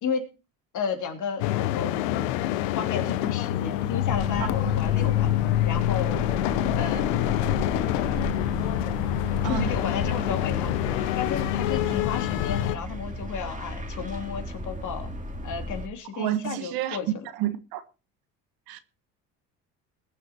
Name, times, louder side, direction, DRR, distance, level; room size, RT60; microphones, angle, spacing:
voice 1, 0.7-2.3 2.6-6.2 6.8-7.5 9.3-15.1 15.4-17.3, left 6 dB, 50° left, 3.4 m, -33 dB
sound 1, 1.4-12.8, left 14 dB, 85° left, 1.0 m, -26 dB
sound 2, 4.1-15.9, right 1 dB, 20° right, 2.6 m, -35 dB
voice 2, 16.1-17.0 17.3-17.8 18.7-18.8, right 14 dB, 70° right, 1.6 m, -30 dB
20.5 x 7.0 x 4.5 m
supercardioid pair, 90°, 38 cm